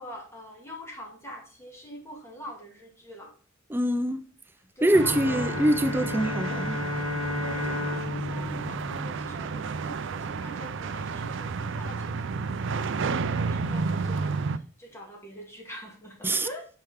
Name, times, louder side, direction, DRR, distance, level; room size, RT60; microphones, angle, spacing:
voice 1, 0.0-3.3 4.8-5.6 7.4-12.3 12.5-16.7, equal, 15° left, 1.9 m, -44 dB
voice 2, 3.7-4.2 4.8-6.8 16.2-16.5, right 1 dB, 10° right, 0.4 m, -24 dB
Bowed string instrument, 4.9-9.8, left 2 dB, 75° left, 1.5 m, -33 dB
sound 1, 4.9-14.6, right 4 dB, 65° right, 0.5 m, -31 dB
9.0 x 4.7 x 3.5 m
head